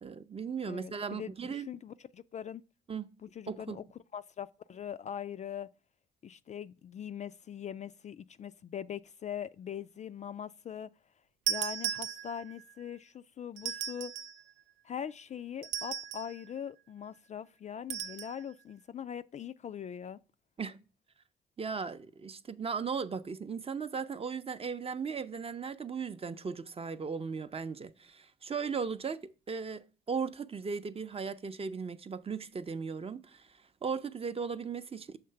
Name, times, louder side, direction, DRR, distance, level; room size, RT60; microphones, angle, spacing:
voice 1, 0.0-1.7 2.9-3.1 3.5-3.8 20.6-20.8 21.6-35.2, right 5 dB, 30° right, 0.6 m, -37 dB
voice 2, 0.7-2.6 3.2-3.8 4.1-5.7 6.2-10.9 11.5-14.1 14.8-20.2, left 8 dB, 35° left, 0.4 m, -41 dB
sound 1, 11.5-12.6 13.6-14.4 15.6-16.4 17.9-18.3, right 9 dB, 80° right, 0.5 m, -36 dB
6.6 x 3.2 x 5.6 m
hypercardioid pair, 55°, 20 cm